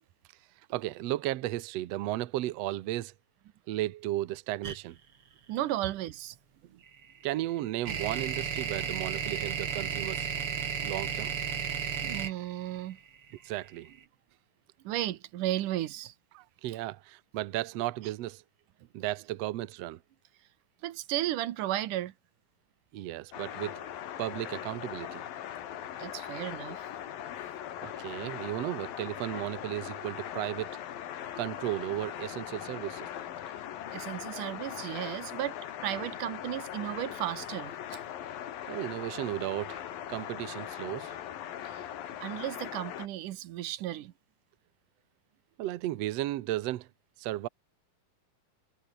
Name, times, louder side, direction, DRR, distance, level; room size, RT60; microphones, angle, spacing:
voice 1, 0.7-3.1 3.7-5.0 6.6-6.8 7.2-10.3 10.8-11.3 13.4-13.9 16.3-18.4 18.9-20.0 22.9-23.9 24.2-25.2 27.8-30.8 31.4-33.1 38.7-41.2 45.6-46.9 47.2-47.5, right 15 dB, 85° right, 1.4 m, -34 dB
sound 1, 4.6-4.8 6.9-13.9, right 7 dB, 40° right, 2.7 m, -33 dB
voice 2, 5.5-6.4 12.0-13.0 14.8-16.1 20.8-22.1 26.0-26.9 33.9-35.6 35.8-38.0 41.6-41.9 42.2-44.1, right 14 dB, 70° right, 2.5 m, -34 dB
sound 2, 23.3-43.1, left 10 dB, 75° left, 3.6 m, -40 dB
omnidirectional pair, 4.2 m